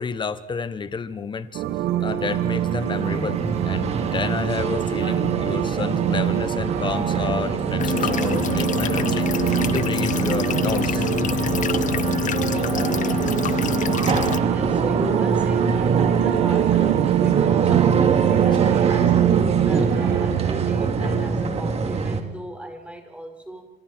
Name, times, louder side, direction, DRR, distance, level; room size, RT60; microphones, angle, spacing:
voice 1, 0.0-1.6 2.0-9.3 9.7-11.0, left 5 dB, 25° left, 1.3 m, -30 dB
sound 1, 1.5-21.3, right 11 dB, 80° right, 1.4 m, -24 dB
sound 2, 2.3-22.2, right 4 dB, 40° right, 3.0 m, -25 dB
sound 3, 7.8-14.4, left 10 dB, 50° left, 0.7 m, -26 dB
voice 2, 14.4-23.7, right 1 dB, 5° right, 5.2 m, -36 dB
28.5 x 27.0 x 4.6 m
cardioid pair, 110°, 17 cm